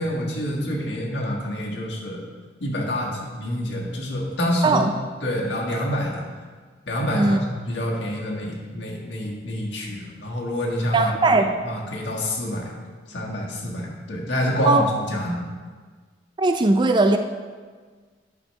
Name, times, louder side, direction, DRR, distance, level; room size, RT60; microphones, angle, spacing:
voice 1, 0.0-2.2 2.6-4.8 5.2-6.2 6.9-12.7 13.1-15.4, equal, 75° left, -2 dB, 1.6 m, -27 dB
voice 2, 10.9-11.5 14.7-14.8 16.4-17.2, right 2 dB, 25° right, 6 dB, 0.3 m, -18 dB
9.8 x 6.2 x 3.2 m, 1.5 s
head